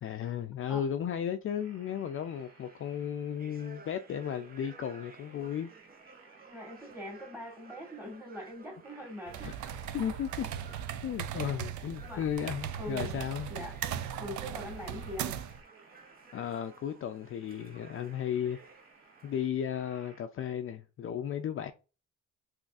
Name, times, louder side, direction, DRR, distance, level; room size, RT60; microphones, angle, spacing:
voice 1, 0.0-5.7 9.4-9.5 9.9-13.5 16.3-18.6 19.2-21.7, left 9 dB, 45° left, 0.4 m, -35 dB
sound 1, 1.6-20.2, right 3 dB, 50° right, 1.0 m, -60 dB
sound 2, 2.3-19.5, right 5 dB, 30° right, 0.6 m, -56 dB
voice 2, 6.5-9.5 11.3-11.5 12.0-12.3 12.8-13.2 13.5-13.8 14.2-15.4, left 1 dB, 10° right, 1.6 m, -43 dB
sound 3, 9.3-15.6, right 9 dB, 75° right, 0.5 m, -38 dB
4.0 x 2.5 x 2.4 m
cardioid pair, 90°, 30 cm